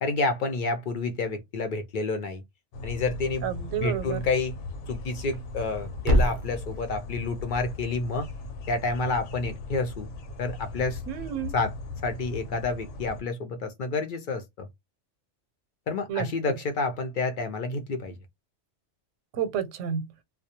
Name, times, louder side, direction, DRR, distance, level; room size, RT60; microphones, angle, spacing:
voice 1, 0.0-2.4 2.8-3.5 3.8-4.6 4.9-8.3 8.7-10.1 10.4-11.0 11.5-11.7 12.0-14.7 15.9-18.2, left 3 dB, 60° left, 0.5 m, -29 dB
sound 1, 2.7-13.2, left 3 dB, 80° left, 0.9 m, -38 dB
voice 2, 3.4-4.2 11.1-11.5 16.1-16.3 19.3-20.0, right 8 dB, 90° right, 1.0 m, -30 dB
Thump thud, 5.2-9.3, equal, 60° right, 0.5 m, -30 dB
2.2 x 2.1 x 2.7 m
omnidirectional pair, 1.2 m